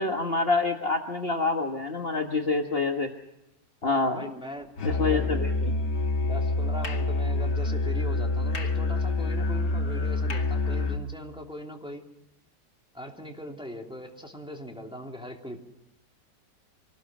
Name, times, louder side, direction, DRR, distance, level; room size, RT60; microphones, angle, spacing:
voice 1, 0.0-3.1 3.8-4.2 4.8-5.8, left 3 dB, 35° left, 3 dB, 1.6 m, -27 dB
voice 2, 4.1-4.7 5.0-5.4 6.2-12.0 12.9-15.6, equal, 5° right, 1 dB, 2.9 m, -40 dB
Musical instrument, 4.8-11.1, left 2 dB, 80° left, 2.9 m, -27 dB
25.5 x 19.5 x 6.2 m, 0.88 s
omnidirectional pair, 1.8 m